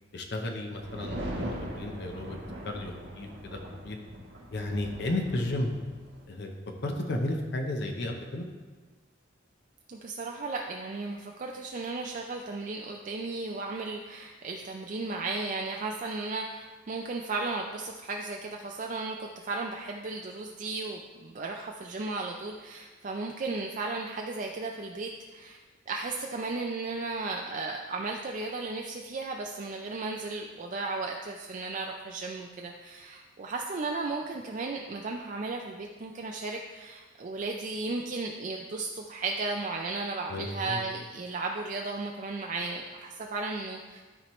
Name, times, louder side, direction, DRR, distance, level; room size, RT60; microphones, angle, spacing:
voice 1, 0.1-2.4 2.6-3.6 3.8-4.0 4.5-5.7 6.3-6.5 6.8-8.5 40.3-40.8, left 1 dB, 60° left, 2 dB, 0.7 m, -33 dB
sound 1, 0.8-6.2, right 1 dB, 70° right, 1.4 m, -40 dB
voice 2, 9.9-25.6 25.9-44.0, right 3 dB, 40° right, 1 dB, 0.4 m, -35 dB
12.5 x 4.4 x 3.1 m, 1.3 s
head